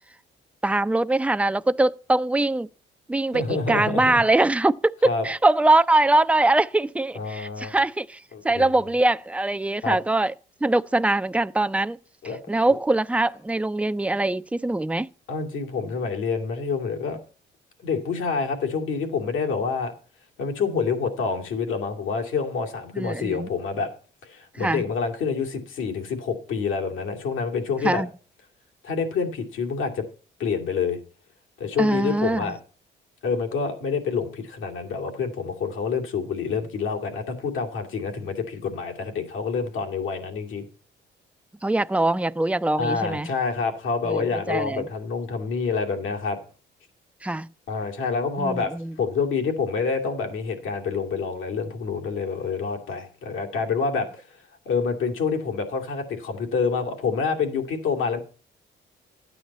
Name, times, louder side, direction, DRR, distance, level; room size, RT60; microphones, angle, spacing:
voice 1, 0.6-2.7 3.1-10.3 10.6-12.0 12.5-15.1 22.9-23.5 24.6-24.8 27.8-28.1 31.8-32.5 41.6-43.3 44.0-44.9 47.2-47.5 48.4-48.9, right 2 dB, 5° right, 0.5 m, -22 dB
voice 2, 3.3-4.2 5.0-5.2 7.1-7.7 8.3-8.7 9.8-10.0 12.2-12.4 15.3-17.2 17.8-19.9 20.4-23.9 24.2-28.0 28.8-30.0 30.4-31.0 31.6-32.6 33.2-40.7 42.8-46.4 47.7-48.7 49.0-54.1 54.7-58.2, left 5 dB, 80° left, 2.6 m, -27 dB
12.5 x 9.0 x 4.1 m
cardioid pair, 90°, 20 cm